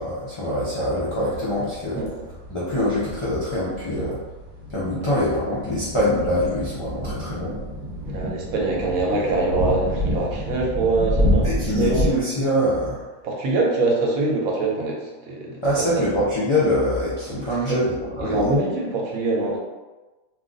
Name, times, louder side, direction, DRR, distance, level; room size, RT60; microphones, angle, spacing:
voice 1, 0.0-2.0 2.5-4.2 4.7-7.6 11.4-13.0 15.6-18.4, left 1 dB, 45° left, -8 dB, 0.4 m, -24 dB
sound 1, 1.0-12.1, left 1 dB, 40° right, 1.3 m, -28 dB
voice 2, 8.1-12.1 13.2-16.1 17.3-17.8 18.2-19.6, right 3 dB, 85° right, -2 dB, 1.2 m, -24 dB
2.6 x 2.4 x 3.7 m, 1.2 s
omnidirectional pair, 1.5 m